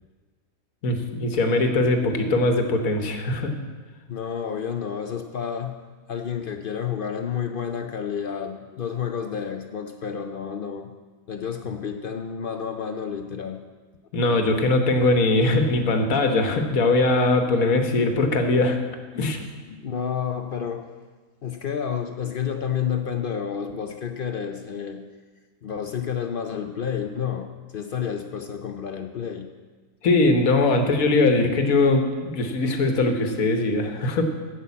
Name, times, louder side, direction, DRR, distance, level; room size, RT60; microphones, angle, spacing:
voice 1, 0.8-3.5 14.1-18.8 19.1-19.4 30.0-34.2, left 2 dB, 90° left, 5 dB, 1.5 m, -21 dB
voice 2, 4.1-5.8 6.1-10.9 11.3-13.7 19.2-20.9 21.4-25.0 25.6-29.5, left 7 dB, 60° left, 7 dB, 0.6 m, -30 dB
8.3 x 7.4 x 8.4 m, 1.4 s
omnidirectional pair, 1.4 m